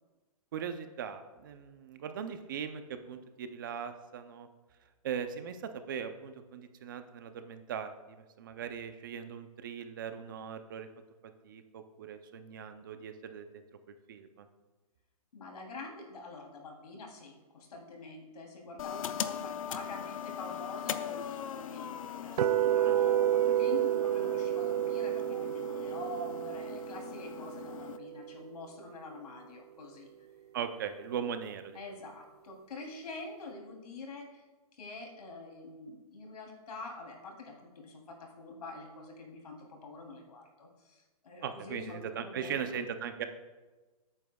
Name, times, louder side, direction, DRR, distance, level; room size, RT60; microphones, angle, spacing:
voice 1, 0.5-4.5 5.0-10.9 11.4-13.6 14.1-14.5 22.8-23.0 30.5-31.8 41.4-43.2, right 7 dB, 35° right, 8 dB, 0.6 m, -39 dB
voice 2, 15.3-21.9 22.2-30.1 31.7-34.4 34.7-42.7, left 3 dB, 85° left, 0 dB, 3.2 m, -46 dB
sound 1, 18.8-28.0, left 9 dB, 60° left, 0.6 m, -41 dB
sound 2, 22.4-28.5, right 12 dB, 85° right, 0.4 m, -30 dB
17.0 x 8.8 x 2.3 m, 1.2 s
hypercardioid pair, 175°, 19 cm